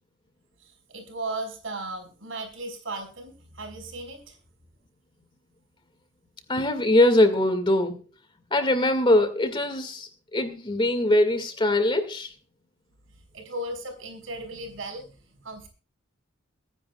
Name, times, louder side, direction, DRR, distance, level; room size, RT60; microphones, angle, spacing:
voice 1, 0.6-4.4 13.3-15.7, right 2 dB, 80° right, 4.9 m, -36 dB
voice 2, 6.5-8.0 8.5-12.3, left 1 dB, 25° left, 2.1 m, -22 dB
24.5 x 10.0 x 2.4 m
head